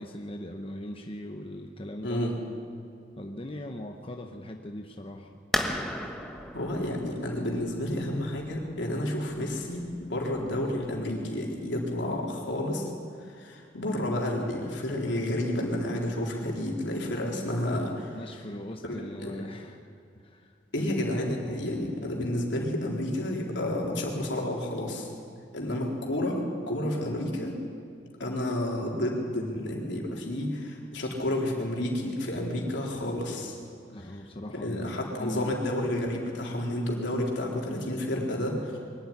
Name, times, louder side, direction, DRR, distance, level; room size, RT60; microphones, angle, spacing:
voice 1, 0.0-2.2 3.2-5.4 18.1-19.8 20.2-20.9 33.9-35.6, left 1 dB, 30° left, 3 dB, 1.1 m, -39 dB
sound 1, 5.5-11.0, equal, ahead, 1.3 m, -36 dB
voice 2, 6.5-12.9 13.3-18.2 18.8-19.0 19.2-19.3 20.7-25.1 25.5-27.6 28.2-33.5 34.6-38.8, left 1 dB, 75° left, -1 dB, 3.9 m, -30 dB
22.5 x 12.5 x 10.0 m, 2.3 s
head